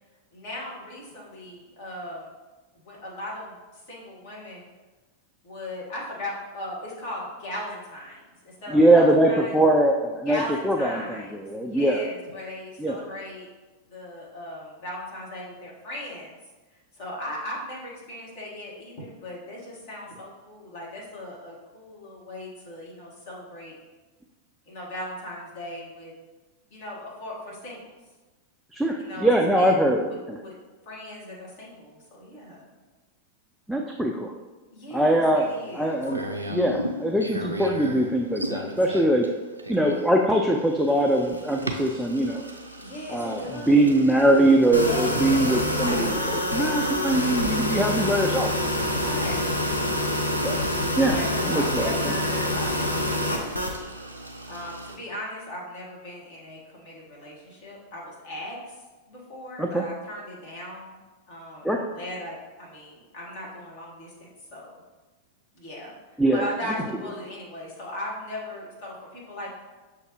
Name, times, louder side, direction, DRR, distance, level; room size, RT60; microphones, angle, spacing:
voice 1, 0.3-2.3 2.8-4.7 5.4-9.6 10.2-13.5 13.9-16.4 16.9-23.7 24.7-26.1 26.7-27.9 29.0-29.3 29.5-30.6 30.8-32.7 34.7-36.0 42.8-44.0 44.7-45.9 48.9-49.5 51.0-53.7 54.5-58.7 59.1-61.0 61.3-64.8 65.5-69.5, left 1 dB, 50° left, -4 dB, 1.4 m, -38 dB
voice 2, 8.7-12.0 12.8-13.0 28.7-30.4 33.7-34.3 34.9-35.5 35.7-39.3 39.7-42.4 43.1-43.4 43.7-48.5 50.4-50.6 51.0-51.2 51.4-51.9 59.6-59.8 61.6-61.8 66.2-66.5, right 1 dB, ahead, 0 dB, 0.3 m, -22 dB
sound 1, 35.4-55.0, equal, 85° right, 0.4 m, -39 dB
sound 2, 44.7-53.7, left 1 dB, 85° left, 0.5 m, -26 dB
6.3 x 2.5 x 3.0 m, 1.2 s
figure-of-eight pair, 90°, 0 cm